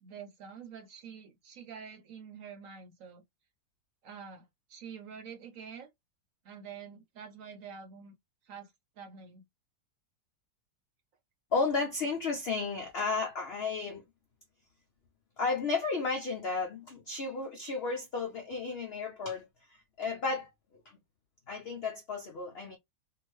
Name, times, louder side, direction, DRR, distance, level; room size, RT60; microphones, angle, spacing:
voice 1, 0.0-3.2 4.0-5.9 6.4-8.1 8.4-9.4, right 6 dB, 60° right, 0.9 m, -47 dB
voice 2, 11.5-14.0 15.4-20.5 21.5-22.8, left 4 dB, 75° left, 0.5 m, -33 dB
2.8 x 2.5 x 3.0 m
omnidirectional pair, 1.8 m